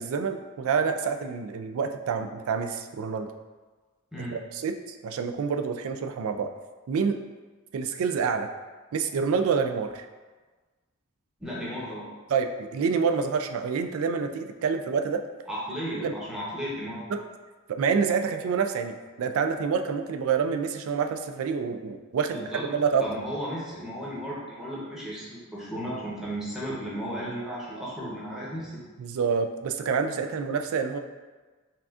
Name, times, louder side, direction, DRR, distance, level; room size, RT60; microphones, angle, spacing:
voice 1, 0.0-3.3 4.2-4.8 5.0-6.5 6.9-7.2 7.7-8.5 8.9-10.1 12.3-15.2 16.0-16.1 17.7-18.9 19.2-23.0 29.0-31.0, right 6 dB, 70° right, 7 dB, 0.3 m, -27 dB
voice 2, 11.4-12.1 15.5-17.0 22.3-22.7 23.0-28.8, equal, ahead, -8 dB, 0.8 m, -34 dB
5.7 x 2.4 x 2.4 m, 1.3 s
head